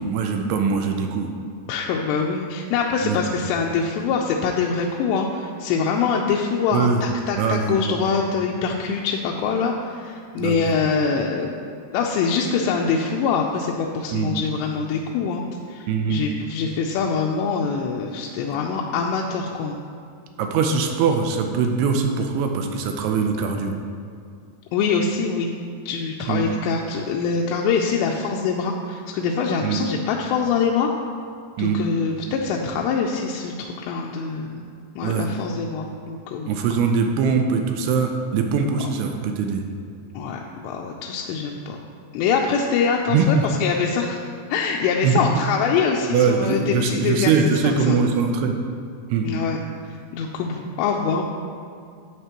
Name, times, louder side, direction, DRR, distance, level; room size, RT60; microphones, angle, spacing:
voice 1, 0.0-1.3 3.0-3.2 6.7-7.0 7.4-8.0 10.4-10.8 14.1-14.4 15.9-16.2 20.4-23.7 26.3-26.5 29.6-29.8 31.6-31.8 35.0-35.3 36.5-39.6 43.1-43.5 45.0-45.2 46.1-48.6 49.1-49.3, right 5 dB, 80° right, 4 dB, 2.5 m, -22 dB
voice 2, 1.7-11.5 11.9-19.8 24.7-25.5 25.9-30.9 31.6-34.6 35.0-36.5 40.1-41.8 42.1-48.0 49.2-49.6 49.8-51.2, left 5 dB, 85° left, 0 dB, 2.7 m, -24 dB
12.0 x 8.0 x 3.0 m, 2.4 s
omnidirectional pair, 5.0 m